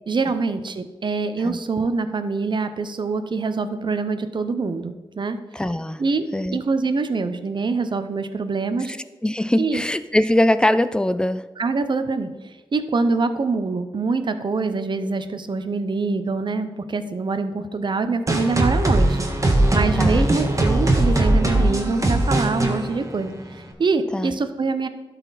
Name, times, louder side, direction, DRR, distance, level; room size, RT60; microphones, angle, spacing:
voice 1, 0.1-5.4 6.0-6.2 6.5-9.0 9.6-9.8 11.6-19.3 19.7-24.9, right 4 dB, 55° right, 10 dB, 0.6 m, -24 dB
voice 2, 5.5-6.0 6.3-6.6 9.2-11.4 20.0-20.3 24.1-24.4, left 1 dB, 10° left, 13 dB, 0.4 m, -21 dB
sound 1, 18.3-23.7, right 1 dB, 35° right, 1.3 m, -20 dB
12.0 x 4.2 x 4.0 m, 1.2 s
cardioid pair, 65°, 10 cm